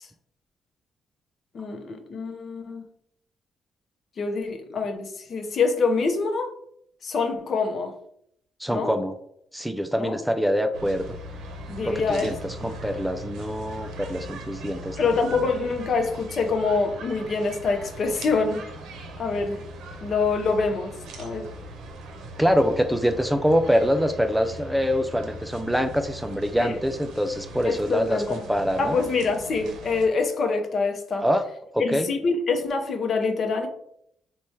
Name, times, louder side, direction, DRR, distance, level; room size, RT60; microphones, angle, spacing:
voice 1, 1.5-2.8 4.2-6.5 7.0-7.9 8.7-8.9 10.0-10.2 11.7-12.3 12.6-12.7 15.0-18.6 19.2-19.6 20.0-21.5 26.6-26.8 27.7-28.4 28.8-31.3 31.8-33.7, left 4 dB, 50° left, 6 dB, 0.6 m, -25 dB
voice 2, 8.6-9.1 9.5-11.2 11.9-15.0 15.4-15.5 22.4-29.0 31.2-31.4 31.7-32.1, equal, 5° right, 7 dB, 0.3 m, -24 dB
sound 1, 10.7-30.1, right 1 dB, 85° right, 0.6 m, -40 dB
3.1 x 2.2 x 4.2 m, 0.70 s
cardioid pair, 90°, 0 cm